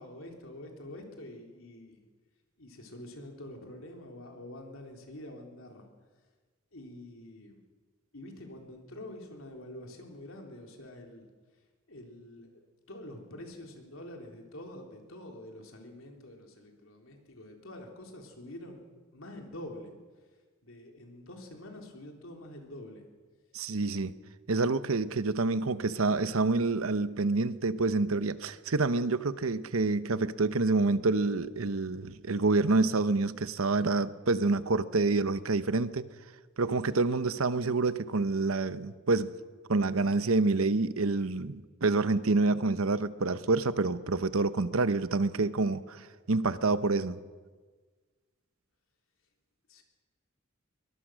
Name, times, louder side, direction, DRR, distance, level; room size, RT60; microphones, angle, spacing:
voice 1, 0.0-2.0 2.6-5.9 6.7-7.6 8.1-11.2 11.9-12.5 12.9-19.9 20.6-23.0 49.7-49.8, left 1 dB, 70° left, 3.6 m, -46 dB
voice 2, 23.5-24.1 24.5-36.1 36.6-39.3 39.7-47.2, right 3 dB, 80° right, 0.9 m, -27 dB
23.0 x 20.0 x 6.3 m
head